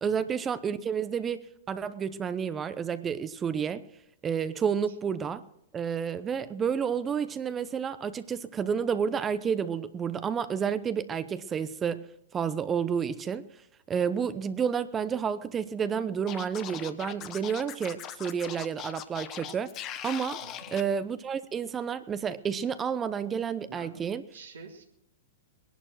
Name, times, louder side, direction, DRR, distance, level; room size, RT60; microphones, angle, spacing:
voice 1, 0.0-3.8 4.2-5.4 5.7-12.0 12.3-13.4 13.9-19.7 20.0-20.4 20.7-24.2, right 7 dB, 20° right, 13 dB, 0.8 m, -30 dB
Scratching (performance technique), 16.3-20.8, left 11 dB, 35° left, 1.1 m, -40 dB
voice 2, 23.6-24.8, right 5 dB, 80° right, 0 dB, 2.6 m, -48 dB
19.5 x 11.0 x 6.1 m, 0.78 s
hypercardioid pair, 110°, 0 cm